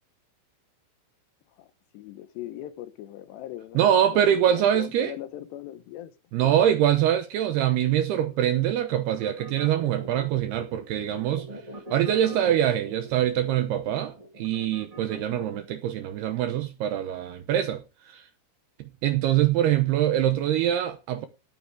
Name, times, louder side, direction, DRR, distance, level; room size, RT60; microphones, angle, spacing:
voice 1, 1.9-4.2 4.5-6.1 6.4-6.6, left 13 dB, 75° left, 2.6 m, -39 dB
voice 2, 3.7-5.1 6.3-11.5 11.9-18.2 19.0-21.3, right 11 dB, 80° right, 2.3 m, -24 dB
sound 1, 9.1-15.8, right 1 dB, 15° right, 1.2 m, -42 dB
18.0 x 8.6 x 3.5 m
omnidirectional pair, 5.9 m